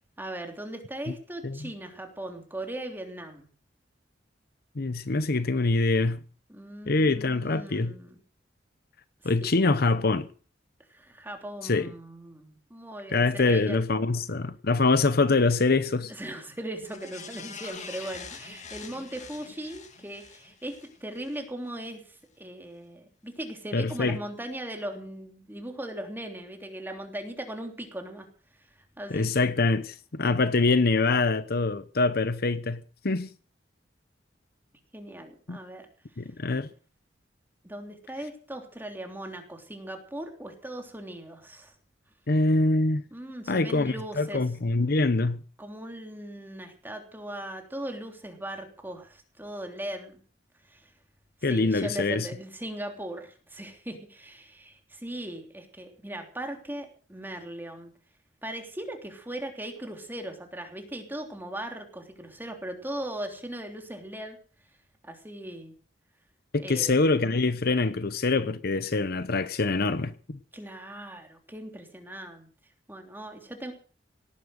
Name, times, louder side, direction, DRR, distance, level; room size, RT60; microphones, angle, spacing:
voice 1, 0.2-3.5 6.5-8.2 9.4-9.5 10.9-13.8 16.1-28.3 29.0-29.4 34.9-35.9 37.6-41.7 43.1-44.4 45.6-50.2 50.7-50.9 51.5-57.9 58.4-64.4 65.0-65.7 66.6-67.0 70.5-72.5 72.9-73.7, right 1 dB, 10° right, 3.2 m, -39 dB
voice 2, 4.8-6.2 6.9-8.0 9.2-10.3 11.6-11.9 13.1-16.1 23.7-24.2 29.1-33.3 35.5-35.6 36.2-36.7 42.3-43.0 43.5-45.4 51.4-52.3 66.5-70.4, left 3 dB, 55° left, 0.9 m, -24 dB
sound 1, 16.8-21.4 21.8-21.9, left 6 dB, 40° left, 2.4 m, -44 dB
18.0 x 10.5 x 6.5 m
head